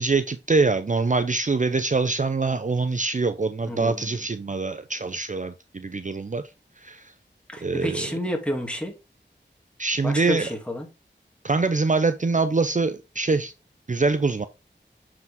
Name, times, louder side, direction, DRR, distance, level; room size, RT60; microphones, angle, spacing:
voice 1, 0.0-6.4 6.8-7.1 7.6-8.2 9.8-10.5 11.4-13.5 13.9-14.5, right 3 dB, 40° right, 0.6 m, -24 dB
voice 2, 3.7-4.0 7.5-8.9 10.0-10.9, equal, 5° left, 2.5 m, -29 dB
9.3 x 4.9 x 3.6 m
wide cardioid pair, 45°, 19 cm